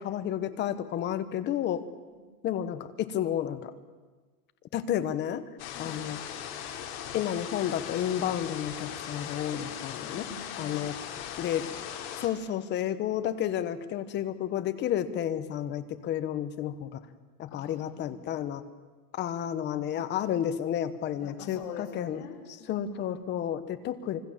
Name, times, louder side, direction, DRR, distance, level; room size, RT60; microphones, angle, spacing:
voice 1, 0.0-1.8 2.4-3.7 4.7-5.4 5.8-6.2 7.1-10.2 10.6-11.0 11.4-11.6 12.2-17.0 17.4-18.6 19.2-22.3 22.7-24.2, left 10 dB, 25° left, 11 dB, 1.1 m, -31 dB
sound 1, 5.6-12.3, left 9 dB, 60° left, 4.3 m, -39 dB
voice 2, 10.0-11.7 17.5-18.3 19.9-20.3 21.2-23.2, left 5 dB, 75° left, -3 dB, 5.7 m, -46 dB
25.5 x 24.0 x 7.3 m, 1.3 s
supercardioid pair, 165°, 46 cm